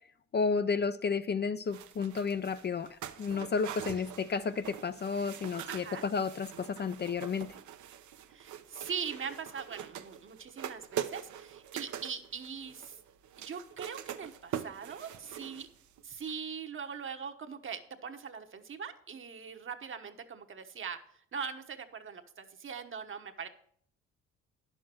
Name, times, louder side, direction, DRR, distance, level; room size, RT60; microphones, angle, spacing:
voice 1, 0.3-7.5, left 5 dB, 35° left, 0.5 m, -32 dB
sound 1, 1.7-16.0 16.3-16.4, right 10 dB, 70° right, 0.9 m, -43 dB
voice 2, 5.7-6.0 8.3-13.0 13.4-15.7 16.0-23.5, right 6 dB, 40° right, 1.1 m, -41 dB
10.0 x 6.6 x 6.1 m
cardioid pair, 90°, 30 cm